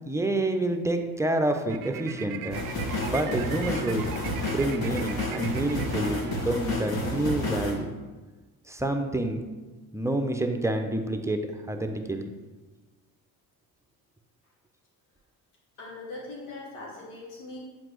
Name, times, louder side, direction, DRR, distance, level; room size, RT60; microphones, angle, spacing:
voice 1, 0.1-2.6 3.0-4.0 4.5-7.9 8.7-9.4 9.9-12.3, right 1 dB, 5° right, 5 dB, 0.7 m, -28 dB
sound 1, 1.7-6.9, right 10 dB, 50° right, 0.5 m, -40 dB
sound 2, 2.5-7.7, left 1 dB, 50° left, 1.9 m, -30 dB
voice 2, 15.8-17.6, left 2 dB, 75° left, -5 dB, 2.0 m, -40 dB
7.8 x 4.2 x 3.1 m, 1.2 s
hypercardioid pair, 45°, 46 cm